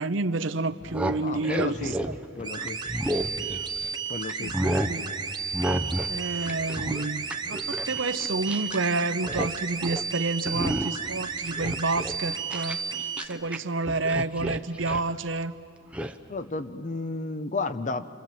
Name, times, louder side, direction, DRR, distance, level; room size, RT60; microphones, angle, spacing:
voice 1, 0.0-1.9 4.4-5.1 6.1-12.8 13.2-15.5, right 3 dB, 80° right, 11 dB, 0.8 m, -29 dB
sound 1, 0.7-3.9 4.3-5.0 5.5-6.2 6.4-8.9 9.1-9.5 9.8-10.1 10.5-11.1 11.5-13.6 13.8-15.1 15.9-16.1, right 1 dB, 5° right, 0.7 m, -31 dB
voice 2, 1.2-1.9 2.4-2.8 4.1-4.5 16.3-18.1, left 3 dB, 40° left, 11 dB, 0.8 m, -32 dB
sound 2, 2.4-13.3, right 5 dB, 25° right, 1.2 m, -33 dB
27.0 x 26.5 x 7.6 m, 2.6 s
head